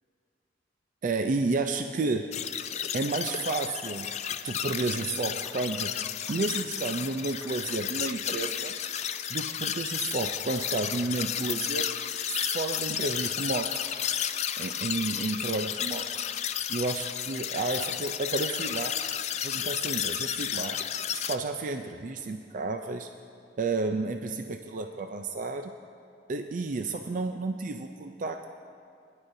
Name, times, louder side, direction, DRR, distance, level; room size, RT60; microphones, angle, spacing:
voice 1, 1.0-2.3 2.9-4.1 4.4-5.9 6.3-8.7 9.3-12.0 12.3-13.8 14.6-16.1 16.7-19.0 19.4-20.8 21.1-23.1 23.6-25.7 26.3-28.5, right 3 dB, 45° right, 6 dB, 0.4 m, -31 dB
sound 1, 2.3-21.4, left 9 dB, 40° left, 0.4 m, -32 dB
sound 2, 5.2-18.0, left 1 dB, 5° left, 1.7 m, -58 dB
21.0 x 10.5 x 2.7 m, 2.3 s
head